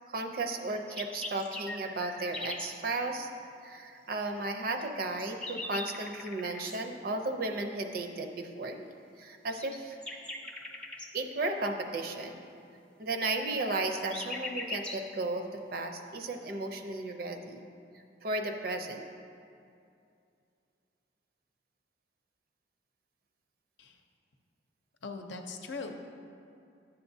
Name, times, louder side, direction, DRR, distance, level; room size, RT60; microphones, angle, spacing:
voice 1, 0.1-3.3 3.6-9.9 11.1-12.5 13.0-17.6 18.2-19.1, right 2 dB, 55° right, 5 dB, 0.5 m, -34 dB
sound 1, 0.7-2.7 4.8-6.8 9.5-11.1 13.5-15.1, left 2 dB, 5° left, 0.4 m, -41 dB
voice 2, 25.0-25.9, left 4 dB, 85° left, 4 dB, 0.6 m, -40 dB
10.5 x 6.9 x 2.7 m, 2.5 s
head